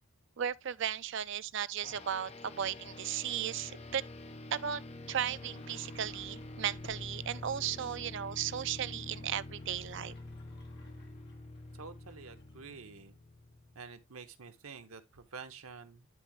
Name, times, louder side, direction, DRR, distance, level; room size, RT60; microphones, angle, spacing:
voice 1, 0.4-4.0 4.5-4.8 5.1-10.2, right 9 dB, 60° right, 0.4 m, -36 dB
sound 1, 1.8-14.0, left 2 dB, 30° left, 0.6 m, -47 dB
Sliding door, 5.2-7.7 9.4-12.5, left 1 dB, 50° left, 1.6 m, -59 dB
voice 2, 11.8-13.2 13.7-16.1, right 5 dB, 85° right, 1.0 m, -48 dB
10.5 x 3.6 x 3.1 m
head